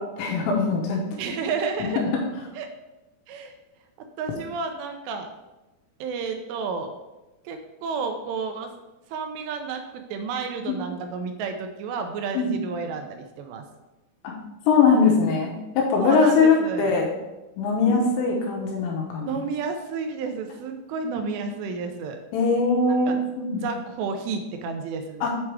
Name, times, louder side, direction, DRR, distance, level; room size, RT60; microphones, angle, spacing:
voice 1, 0.0-1.0 12.3-12.5 14.2-14.3 14.7-17.1 17.6-19.4 21.2-21.3 21.5-21.6 22.3-23.7 25.2-25.3, left 4 dB, 80° left, -1 dB, 3.2 m, -21 dB
voice 2, 1.2-2.0 2.6-2.7 3.3-3.5 4.2-5.3 6.0-6.9 7.5-8.7 9.1-13.6 16.0-17.0 17.9-18.1 19.2-22.2 23.1-23.2 23.5-25.3, right 5 dB, 80° right, 5 dB, 2.7 m, -31 dB
7.5 x 4.7 x 4.7 m, 1.0 s
omnidirectional pair, 5.2 m